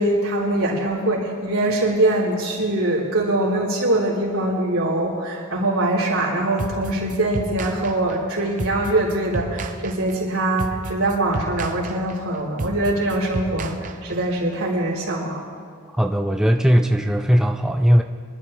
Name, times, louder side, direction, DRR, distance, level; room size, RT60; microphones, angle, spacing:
voice 1, 0.0-15.5, right 1 dB, 80° right, -5 dB, 3.7 m, -23 dB
sound 1, 6.6-14.4, right 2 dB, 40° right, 0.7 m, -31 dB
voice 2, 15.9-18.0, equal, 5° right, 4 dB, 0.4 m, -18 dB
24.0 x 12.0 x 3.2 m, 2.2 s
head